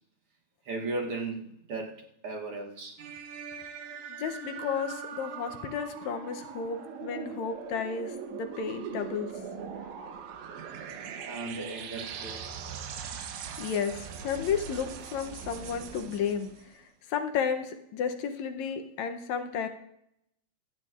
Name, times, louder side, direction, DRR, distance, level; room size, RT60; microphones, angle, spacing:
voice 1, 0.6-3.0 5.6-5.7 11.2-12.4, right 3 dB, 60° right, 1 dB, 1.7 m, -36 dB
sound 1, 3.0-16.7, right 7 dB, 85° right, 2.4 m, -41 dB
voice 2, 4.1-9.3 13.6-16.5 17.1-19.7, left 7 dB, 75° left, 6 dB, 2.0 m, -32 dB
25.5 x 8.7 x 2.4 m, 0.77 s
omnidirectional pair, 3.4 m